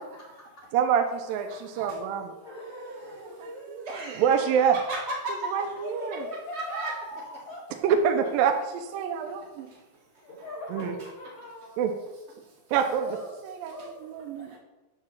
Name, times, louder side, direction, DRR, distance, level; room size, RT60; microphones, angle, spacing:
voice 1, 0.7-2.3 3.7-3.9 4.2-4.8 5.5-6.2 7.8-9.7 10.7-10.9 11.8-11.9 12.7-13.1 13.4-14.5, right 7 dB, 80° right, 5 dB, 2.3 m, -26 dB
voice 2, 1.5-2.0 2.4-5.8 6.5-6.9 9.7-10.5 10.8-11.1 12.4-12.6 14.4-14.6, right 2 dB, 45° right, -4 dB, 0.8 m, -38 dB
voice 3, 2.2-3.8 5.8-6.3 6.7-7.8 10.1-11.9 13.0-13.3 13.7-13.9 14.2-14.3, left 1 dB, 45° left, -7 dB, 2.0 m, -41 dB
8.9 x 4.0 x 7.1 m, 1.1 s
omnidirectional pair, 4.4 m